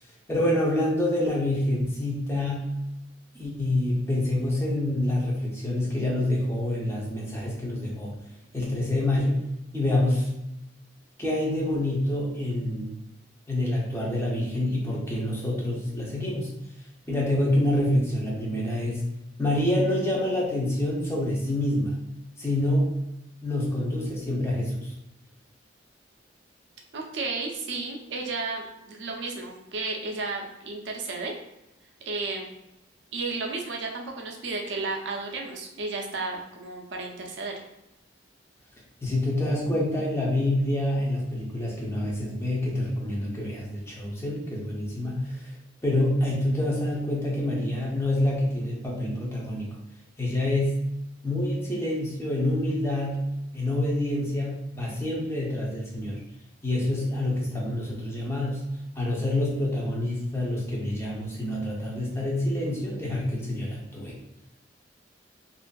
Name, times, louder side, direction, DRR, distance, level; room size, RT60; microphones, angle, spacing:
voice 1, 0.3-2.7 3.3-8.1 8.5-9.4 9.7-10.3 11.2-12.9 13.5-16.5 17.1-19.0 19.4-21.9 22.4-22.9 23.4-24.9 39.0-45.5 45.8-49.8 50.2-50.8 51.2-53.2 53.5-56.2 56.6-58.6 59.0-64.1, left 1 dB, 15° left, -4 dB, 0.6 m, -27 dB
voice 2, 26.9-31.4 32.0-32.5 33.1-37.5, right 3 dB, 65° right, 1 dB, 0.5 m, -33 dB
2.5 x 2.4 x 2.2 m, 0.90 s
head